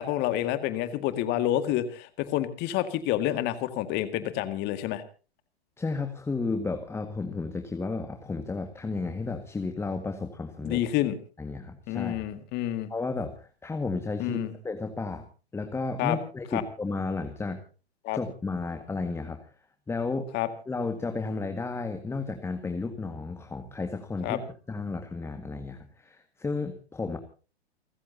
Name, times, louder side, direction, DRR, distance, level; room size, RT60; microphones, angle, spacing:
voice 1, 0.0-5.0 10.6-11.2 11.9-12.9 14.2-14.5 16.0-16.2 16.5-16.6 18.0-18.2 20.3-20.5 24.2-24.4, left 13 dB, 30° left, 11 dB, 2.1 m, -28 dB
voice 2, 5.8-10.8 11.4-12.3 12.9-15.2 15.5-17.6 18.1-19.5 19.9-20.3 20.7-24.4 24.7-27.2, left 3 dB, 10° left, 7 dB, 1.8 m, -33 dB
29.5 x 14.5 x 2.8 m, 0.37 s
figure-of-eight pair, 110°, 32 cm